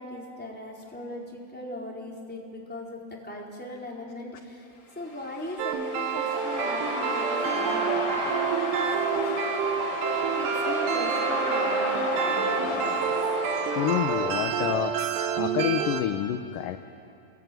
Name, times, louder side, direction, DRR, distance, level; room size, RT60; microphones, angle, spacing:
voice 1, 0.0-4.7 4.9-8.9 9.1-9.3 10.3-13.1, left 1 dB, ahead, -3 dB, 3.6 m, -39 dB
sound 1, 5.1-14.9, left 3 dB, 45° left, 4.3 m, -32 dB
sound 2, 5.6-16.0, right 8 dB, 90° right, 3.5 m, -28 dB
voice 2, 13.8-15.0 15.4-16.8, left 12 dB, 75° left, 7 dB, 2.1 m, -28 dB
29.5 x 22.0 x 9.3 m, 2.6 s
omnidirectional pair, 4.7 m